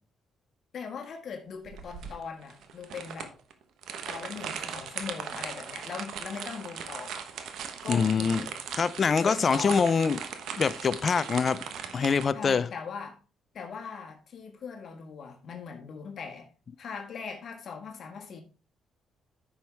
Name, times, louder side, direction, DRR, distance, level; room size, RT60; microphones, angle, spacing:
voice 1, 0.7-3.3 4.1-7.2 7.8-8.5 9.2-9.9 12.3-13.1 13.5-16.5 16.8-18.4, left 6 dB, 60° left, 1.6 m, -40 dB
sound 1, 1.7-12.3, right 7 dB, 75° right, 1.2 m, -38 dB
voice 2, 7.9-8.4 8.8-10.2 10.6-11.6 11.9-12.7, left 5 dB, 45° left, 0.6 m, -24 dB
9.7 x 6.2 x 3.5 m
cardioid pair, 90°, 0 cm